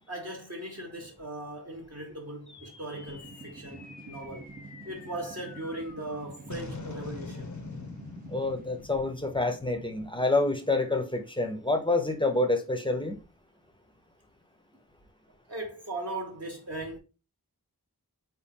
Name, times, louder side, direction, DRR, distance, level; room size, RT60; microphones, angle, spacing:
voice 1, 0.1-4.5 4.8-7.6 15.5-17.0, right 1 dB, 40° right, 1.0 m, -38 dB
sound 1, 2.5-11.0, left 3 dB, 50° left, 0.7 m, -45 dB
sound 2, 2.9-8.9, right 3 dB, 25° right, 0.6 m, -49 dB
voice 2, 8.3-13.2, left 2 dB, 15° left, 0.7 m, -27 dB
4.1 x 2.2 x 3.6 m
wide cardioid pair, 50°, 37 cm